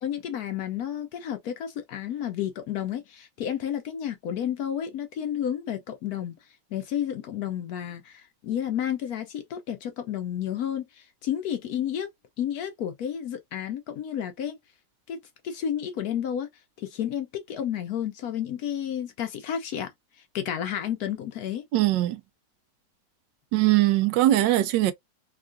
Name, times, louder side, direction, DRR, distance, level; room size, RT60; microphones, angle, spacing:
voice 1, 0.0-6.4 6.7-12.1 12.4-14.6 15.1-15.2 15.4-16.5 16.8-19.9 20.3-21.6, left 9 dB, 70° left, 1.0 m, -31 dB
voice 2, 21.7-22.2 23.5-24.9, right 15 dB, 80° right, 1.2 m, -21 dB
3.6 x 2.3 x 2.4 m
omnidirectional pair, 1.9 m